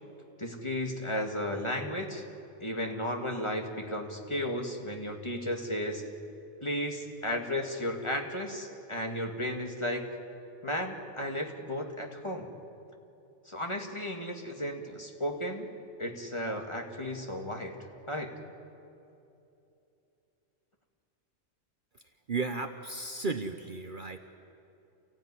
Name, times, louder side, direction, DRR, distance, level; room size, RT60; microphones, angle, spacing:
voice 1, 0.4-2.2 2.6-6.1 6.6-10.1 10.6-12.5 13.5-15.7 16.0-17.8 18.1-18.3, left 1 dB, 25° left, 3 dB, 2.1 m, -34 dB
voice 2, 22.3-24.2, right 3 dB, 45° right, 7 dB, 1.0 m, -34 dB
28.5 x 15.5 x 9.8 m, 2.8 s
omnidirectional pair, 1.3 m